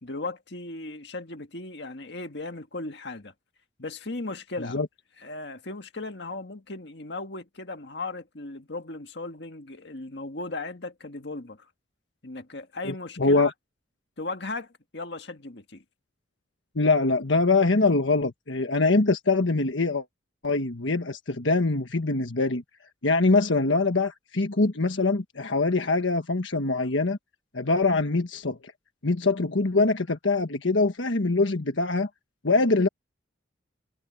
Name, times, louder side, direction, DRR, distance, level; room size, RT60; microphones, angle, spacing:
voice 1, 0.0-3.3 3.8-4.8 5.2-11.7 12.2-13.5 14.2-15.8, left 2 dB, 60° left, 1.8 m, -37 dB
voice 2, 12.8-13.5 16.7-20.0 20.4-22.6 23.0-27.2 27.5-28.7 29.0-32.1 32.4-32.9, left 3 dB, 75° left, 1.4 m, -23 dB
head